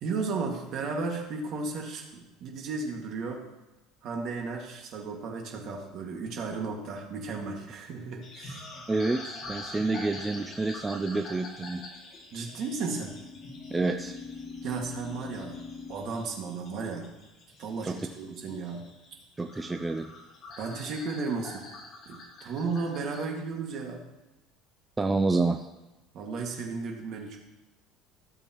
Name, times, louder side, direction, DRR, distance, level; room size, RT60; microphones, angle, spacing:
voice 1, 0.0-3.4 4.0-8.7 12.3-13.1 14.6-15.6 15.9-17.1 17.6-18.9 20.6-21.7 22.1-24.0 26.1-27.4, right 4 dB, 45° right, 1 dB, 2.0 m, -34 dB
sound 1, 5.9-6.3 12.4-16.0, left 4 dB, 15° left, 0.9 m, -43 dB
sound 2, 8.2-23.2, left 2 dB, 35° left, 2.4 m, -46 dB
voice 2, 8.9-11.8 13.7-14.1 17.8-18.0 19.4-20.1 25.0-25.7, right 3 dB, 10° right, 5 dB, 0.4 m, -28 dB
16.0 x 7.0 x 3.0 m, 1.1 s
cardioid pair, 160°, 0 cm